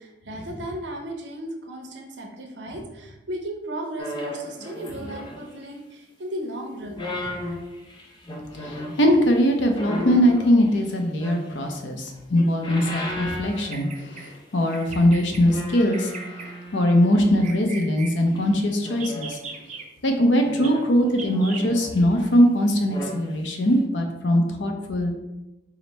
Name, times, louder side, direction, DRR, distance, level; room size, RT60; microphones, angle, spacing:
voice 1, 0.0-7.1, right 1 dB, 80° right, 1 dB, 0.8 m, -35 dB
sound 1, 4.0-5.7 6.7-9.0 9.7-11.8 12.2-14.3 14.6-14.8 15.4-17.5 18.4-19.7 20.4-22.4 22.7-23.2 23.7-23.8, left 1 dB, 25° left, 0.5 m, -35 dB
voice 2, 8.5-16.1 16.7-19.4 20.0-25.1, equal, 85° left, 3 dB, 0.7 m, -21 dB
Bird vocalization bird call bird song, 13.5-14.3 14.7-15.4 15.9-16.5 17.1-18.1 18.9-19.8 20.6-20.7 21.2-21.7, right 5 dB, 40° right, 0.5 m, -39 dB
4.9 x 2.1 x 4.0 m, 1.0 s
head